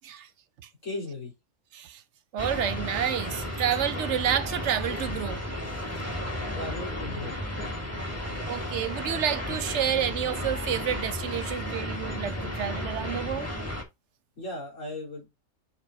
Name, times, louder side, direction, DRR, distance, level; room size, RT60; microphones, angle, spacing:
voice 1, 0.8-1.3 6.5-7.3 14.4-15.3, left 2 dB, 75° left, 3.8 m, -36 dB
voice 2, 2.3-5.4 8.2-13.5, right 9 dB, 70° right, 0.9 m, -29 dB
sound 1, 2.4-13.8, left 1 dB, 10° left, 1.4 m, -33 dB
6.9 x 3.7 x 3.8 m
omnidirectional pair, 1.3 m